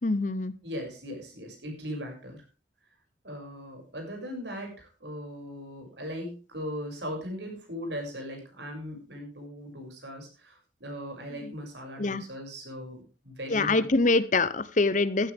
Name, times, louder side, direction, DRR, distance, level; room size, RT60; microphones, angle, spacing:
voice 1, 0.0-0.5 11.4-11.5 12.0-12.2 13.5-15.3, left 3 dB, 45° left, 16 dB, 0.8 m, -25 dB
voice 2, 0.6-2.4 3.2-13.9, equal, 70° right, 3 dB, 6.7 m, -39 dB
15.0 x 13.5 x 3.6 m, 0.34 s
head